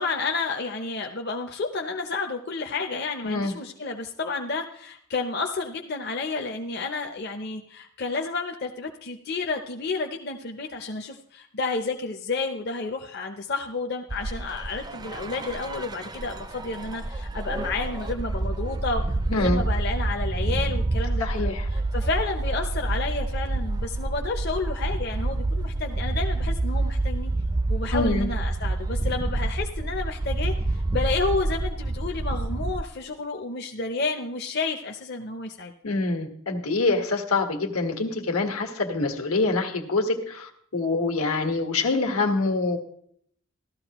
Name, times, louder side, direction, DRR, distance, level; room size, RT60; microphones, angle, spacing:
voice 1, 0.0-27.3 27.7-35.7, left 3 dB, 50° left, 3 dB, 0.6 m, -31 dB
voice 2, 3.2-3.5 19.3-19.6 21.2-21.7 27.9-28.3 35.8-42.8, left 3 dB, 85° left, 4 dB, 1.6 m, -25 dB
sound 1, 14.1-32.8, right 2 dB, 20° right, 0.4 m, -28 dB
15.5 x 12.5 x 3.0 m, 0.68 s
head